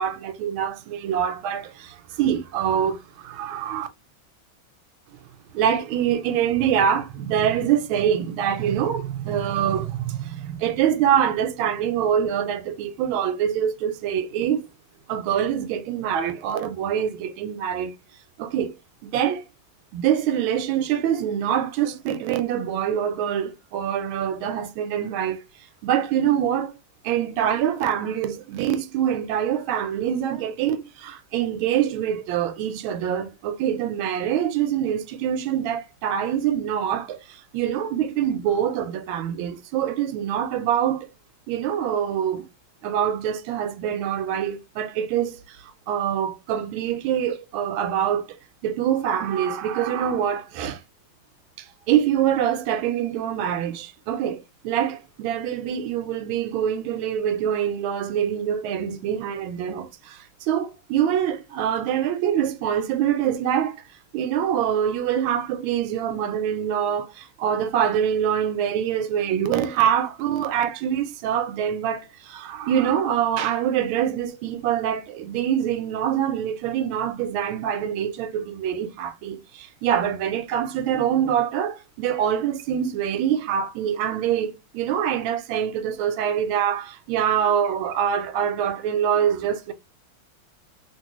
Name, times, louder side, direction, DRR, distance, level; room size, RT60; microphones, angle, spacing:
voice 1, 0.0-3.9 5.5-14.7 15.1-17.9 18.4-18.7 19.0-19.4 19.9-25.4 25.8-26.7 27.0-41.1 41.5-42.5 42.8-48.3 48.6-50.8 51.6-63.8 64.1-89.7, right 9 dB, 90° right, 1.4 m, -25 dB
2.9 x 2.9 x 2.9 m
omnidirectional pair, 2.2 m